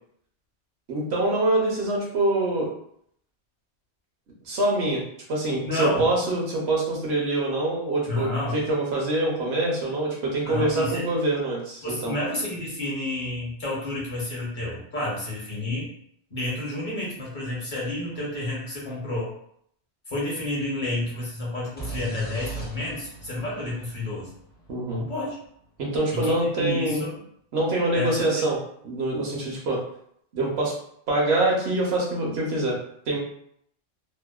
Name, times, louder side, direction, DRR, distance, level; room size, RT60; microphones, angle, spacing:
voice 1, 0.9-2.7 4.5-5.0 5.3-12.1 24.7-25.0 25.8-27.1 27.5-28.6 28.8-29.8 30.3-30.7 31.1-32.8 33.1-33.2, right 2 dB, 70° right, -2 dB, 0.9 m, -25 dB
voice 2, 5.6-6.1 8.1-8.6 10.4-11.1 11.8-15.9 16.3-19.3 20.1-24.3 24.9-25.4 26.1-27.2 27.9-28.5, left 1 dB, 45° left, -5 dB, 0.9 m, -30 dB
sound 1, 21.8-25.5, right 2 dB, 15° left, 0.4 m, -38 dB
2.7 x 2.1 x 2.3 m, 0.68 s
omnidirectional pair, 1.2 m